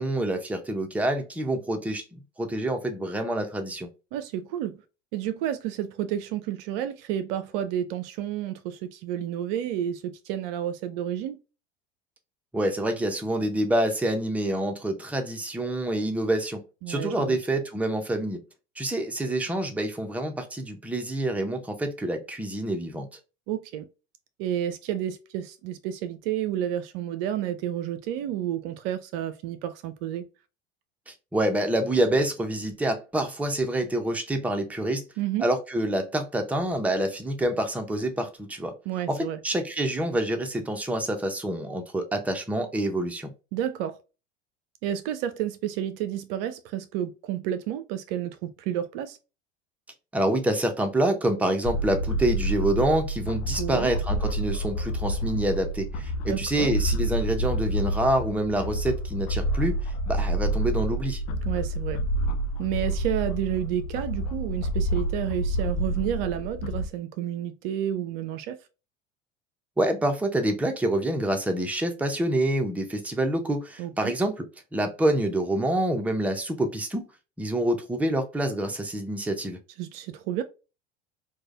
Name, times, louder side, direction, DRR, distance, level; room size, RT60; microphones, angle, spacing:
voice 1, 0.0-3.9 12.5-18.4 18.8-23.1 31.1-35.0 35.4-38.7 39.1-43.3 50.1-59.8 60.1-61.2 69.8-74.5 74.7-77.1 77.4-79.6, right 1 dB, 5° right, 0.7 m, -27 dB
voice 2, 4.1-4.8 5.1-11.4 16.8-17.4 23.5-23.9 24.4-30.2 35.2-35.5 38.9-39.4 43.5-44.0 44.8-49.2 53.6-53.9 56.3-56.7 61.4-62.0 62.6-68.6 73.8-74.1 79.8-80.4, right 11 dB, 50° right, 0.5 m, -30 dB
sound 1, 51.6-66.9, right 1 dB, 45° left, 0.6 m, -28 dB
4.7 x 2.3 x 2.5 m
figure-of-eight pair, 75°, 36 cm